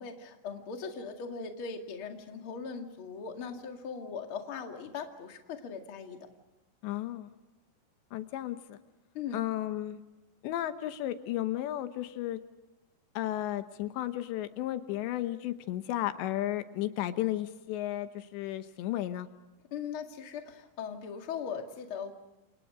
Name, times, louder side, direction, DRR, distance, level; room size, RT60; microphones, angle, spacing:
voice 1, 0.0-6.2 9.1-9.4 19.7-22.1, left 6 dB, 40° left, 4 dB, 2.2 m, -39 dB
voice 2, 6.8-7.3 8.1-8.8 9.3-10.0 10.4-12.4 13.2-19.3, left 13 dB, 85° left, 10 dB, 3.3 m, -33 dB
29.5 x 27.5 x 5.0 m, 1.0 s
omnidirectional pair, 5.1 m